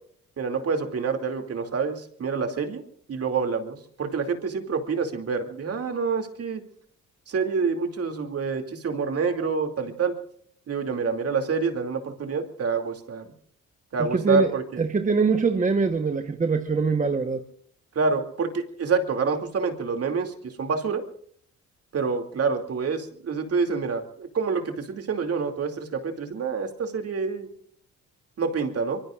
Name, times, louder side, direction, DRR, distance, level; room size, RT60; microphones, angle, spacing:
voice 1, 0.4-2.8 3.1-6.6 7.3-10.1 10.7-13.3 13.9-14.8 17.9-21.0 21.9-27.5 28.4-29.0, right 5 dB, 50° right, 2.7 m, -27 dB
voice 2, 14.0-14.5 14.8-17.4, right 4 dB, 25° right, 1.2 m, -23 dB
25.0 x 23.0 x 2.5 m
cardioid pair, 90°, 30 cm